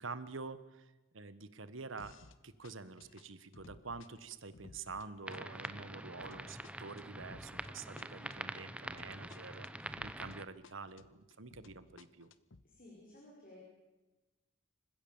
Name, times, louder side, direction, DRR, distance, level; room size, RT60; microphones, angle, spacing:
voice 1, 0.0-2.2 2.4-12.3, right 4 dB, 90° right, 14 dB, 1.4 m, -47 dB
sound 1, 2.0-2.4 2.6-10.4 10.6-12.6, left 3 dB, 90° left, 1.0 m, -58 dB
sound 2, 5.3-10.4, right 1 dB, 5° right, 0.7 m, -45 dB
voice 2, 12.6-13.6, left 1 dB, 45° left, -3 dB, 5.6 m, -56 dB
27.0 x 15.5 x 7.3 m, 1.1 s
head